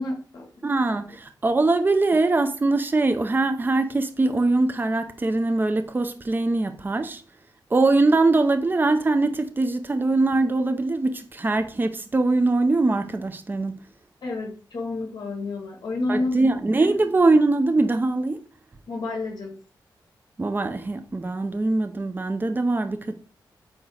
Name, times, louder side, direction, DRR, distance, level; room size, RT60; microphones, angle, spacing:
voice 1, 0.0-0.5 14.2-16.5 18.9-19.6, left 2 dB, 65° left, 1.9 m, -29 dB
voice 2, 0.6-7.2 7.7-13.8 16.1-18.4 20.4-23.1, right 2 dB, 25° right, 0.7 m, -22 dB
8.8 x 3.0 x 6.5 m
wide cardioid pair, 110°, 8 cm